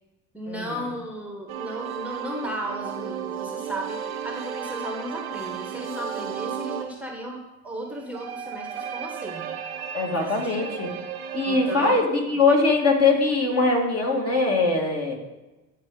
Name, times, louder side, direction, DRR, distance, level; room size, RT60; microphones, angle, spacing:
voice 1, 0.3-9.6 10.1-10.7 11.5-12.0 12.3-12.4, equal, 5° right, 0 dB, 1.0 m, -35 dB
sound 1, 1.5-7.0 7.9-12.0, right 8 dB, 90° right, 0.7 m, -34 dB
voice 2, 9.9-10.9 11.3-15.1, left 3 dB, 35° left, 1 dB, 1.7 m, -22 dB
9.1 x 4.6 x 3.7 m, 1.1 s
hypercardioid pair, 65°, 42 cm